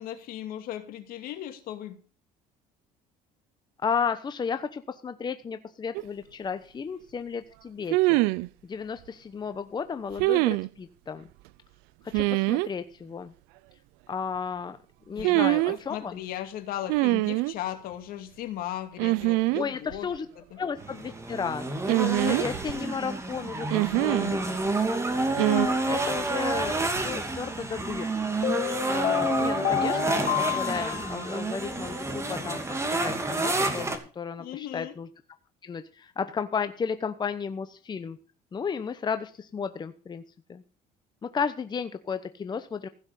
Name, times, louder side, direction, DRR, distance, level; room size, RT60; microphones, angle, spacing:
voice 1, 0.0-2.0 15.1-15.5 15.9-20.1 34.4-34.9, left 12 dB, 70° left, 7 dB, 2.6 m, -37 dB
voice 2, 3.8-8.2 8.6-11.3 12.1-13.3 14.1-14.8 15.1-16.2 19.6-20.3 20.6-21.7 22.0-24.6 25.4-28.0 28.8-32.6 32.9-33.9 34.1-35.1 35.6-38.2 38.5-40.2 40.5-40.6 41.2-42.9, left 6 dB, 30° left, 10 dB, 1.0 m, -33 dB
sound 1, 5.9-6.0 7.9-8.5 10.2-10.7 12.1-12.7 15.2-15.8 16.9-17.5 19.0-19.6 19.9-20.0 21.9-22.8 23.7-24.3 25.3-25.7, right 22 dB, 90° right, 0.5 m, -24 dB
sound 2, 20.8-34.0, right 2 dB, 20° right, 2.7 m, -29 dB
Synthesized Bell Tones, 24.0-24.3 28.4-31.5, left 11 dB, 50° left, 0.6 m, -30 dB
15.5 x 6.3 x 7.5 m, 0.40 s
cardioid pair, 100°, 16 cm